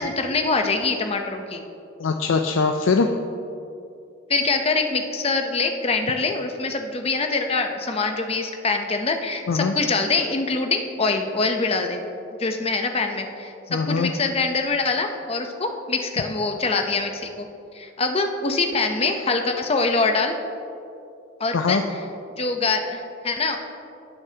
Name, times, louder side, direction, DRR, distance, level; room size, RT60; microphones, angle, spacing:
voice 1, 0.0-1.6 4.3-12.0 12.4-17.5 17.7-20.3 21.4-22.0 22.4-23.6, left 3 dB, 30° left, 5 dB, 0.7 m, -24 dB
voice 2, 2.0-3.1 9.5-9.7 13.7-14.1 21.5-21.8, left 4 dB, 90° left, 5 dB, 0.5 m, -21 dB
18.5 x 6.6 x 2.9 m, 2.6 s
head